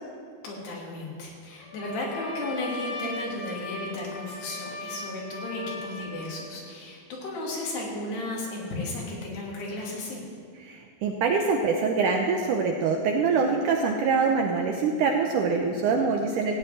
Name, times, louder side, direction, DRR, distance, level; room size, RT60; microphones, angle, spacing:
voice 1, 0.4-10.2, left 2 dB, 90° left, -3 dB, 4.7 m, -34 dB
Trumpet, 1.6-6.5, left 2 dB, 75° left, 5.7 m, -38 dB
voice 2, 10.6-16.6, right 4 dB, 75° right, 2 dB, 1.9 m, -24 dB
16.0 x 6.3 x 9.1 m, 2.2 s
omnidirectional pair, 4.6 m